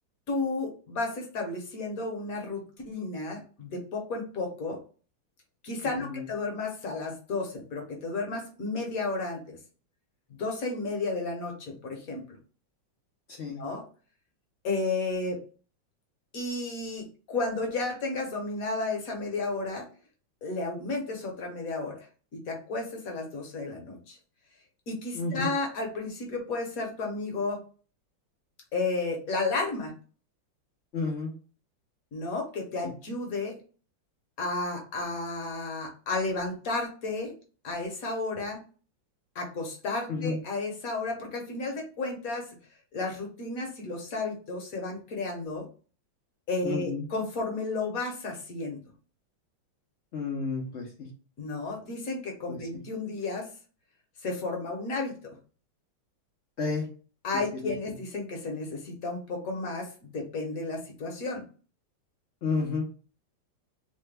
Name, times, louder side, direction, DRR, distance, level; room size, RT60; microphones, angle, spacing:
voice 1, 0.3-4.8 5.6-9.6 10.3-12.2 13.6-13.8 14.6-15.4 16.3-19.9 20.4-22.1 22.3-24.2 24.9-27.6 28.7-29.9 32.1-33.6 34.4-37.3 37.6-38.6 39.3-42.4 42.9-45.7 46.5-48.8 51.4-53.5 54.2-55.1 57.2-61.4, left 3 dB, 60° left, 1 dB, 1.1 m, -32 dB
voice 2, 5.8-6.2 13.4-13.6 25.1-25.5 30.9-31.3 32.8-32.9 40.1-40.4 46.6-47.0 50.1-51.1 52.5-52.6 56.6-56.9 57.6-57.7 62.4-63.0, left 4 dB, 80° left, -1 dB, 0.6 m, -31 dB
3.3 x 2.2 x 3.2 m, 0.38 s
omnidirectional pair, 2.1 m